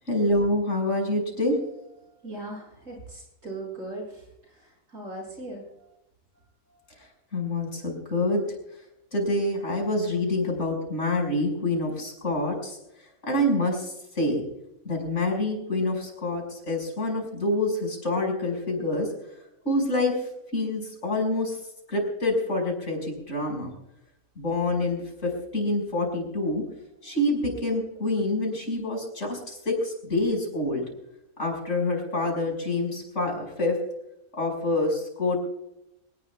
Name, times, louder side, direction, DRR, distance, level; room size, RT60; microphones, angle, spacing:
voice 1, 0.1-1.6 7.3-8.4 9.1-12.8 13.2-14.4 14.8-19.1 19.6-20.1 20.5-21.6 21.9-23.7 24.4-26.6 27.0-30.8 31.4-33.8 34.3-35.4, left 2 dB, 55° left, 1 dB, 6.0 m, -26 dB
voice 2, 2.2-4.2 4.5-4.6 4.9-5.6, right 2 dB, 65° right, -1 dB, 7.4 m, -38 dB
23.5 x 19.5 x 2.3 m, 0.84 s
omnidirectional pair, 1.5 m